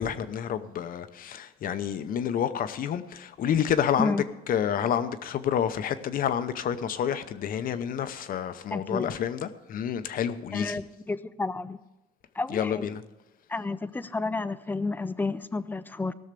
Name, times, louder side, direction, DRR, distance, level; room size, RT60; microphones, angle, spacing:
voice 1, 0.0-4.1 4.5-10.8 12.5-13.0, left 9 dB, 55° left, 0.9 m, -29 dB
voice 2, 8.7-9.1 10.5-11.8 12.3-12.9 13.5-16.1, left 3 dB, 10° left, 0.5 m, -31 dB
17.5 x 6.5 x 6.8 m
cardioid pair, 110°, 17 cm